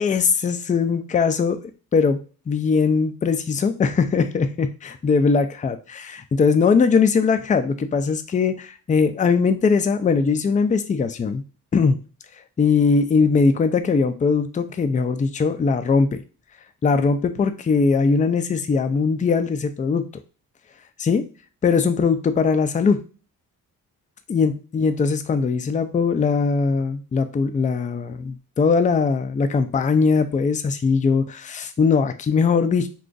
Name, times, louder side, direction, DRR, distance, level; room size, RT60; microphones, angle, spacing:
voice 1, 0.0-1.6 1.9-2.2 2.5-11.4 11.7-12.0 12.6-16.2 16.8-20.1 21.0-21.2 21.6-23.0 24.3-32.9, left 5 dB, 20° left, 9 dB, 0.4 m, -20 dB
2.5 x 2.4 x 3.8 m, 0.34 s
cardioid pair, 75°, 37 cm